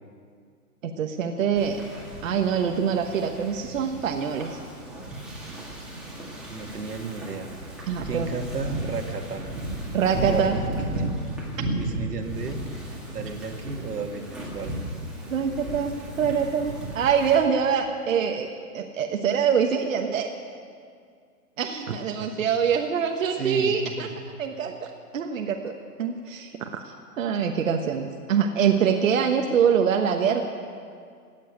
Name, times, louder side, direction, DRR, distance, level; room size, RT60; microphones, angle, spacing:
voice 1, 0.8-1.8 2.2-4.6 7.9-8.3 9.9-10.6 11.6-11.7 15.3-18.5 18.7-20.3 21.6-24.1 24.4-25.7 26.0-30.4, right 7 dB, 55° right, 4 dB, 1.2 m, -24 dB
Wind / Ocean, 1.6-17.3, right 1 dB, ahead, 1.9 m, -34 dB
voice 2, 6.5-7.5 8.0-9.5 10.3-11.2 11.8-12.6 13.1-14.7 22.2-22.5 23.4-24.1, right 4 dB, 80° right, 4 dB, 2.0 m, -33 dB
17.0 x 7.4 x 9.7 m, 2.2 s
hypercardioid pair, 155°, 47 cm